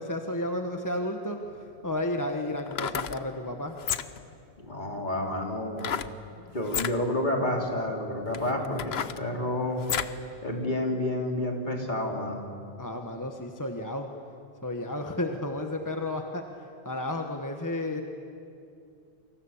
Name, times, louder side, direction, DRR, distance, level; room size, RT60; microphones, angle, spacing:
voice 1, 0.0-1.4 1.8-3.8 12.8-14.1 14.6-16.4 16.8-18.0, left 1 dB, 20° left, 4 dB, 1.4 m, -32 dB
sound 1, 1.4-1.5 2.6-3.2 3.8-4.3 5.8-6.2 6.6-7.0 7.7-7.8 8.3-10.2 10.6-10.7, left 8 dB, 80° left, 1.1 m, -32 dB
voice 2, 4.6-5.9 6.5-9.8 10.4-12.5, left 1 dB, 50° left, 0 dB, 3.5 m, -30 dB
29.0 x 25.0 x 7.3 m, 2.6 s
omnidirectional pair, 1.0 m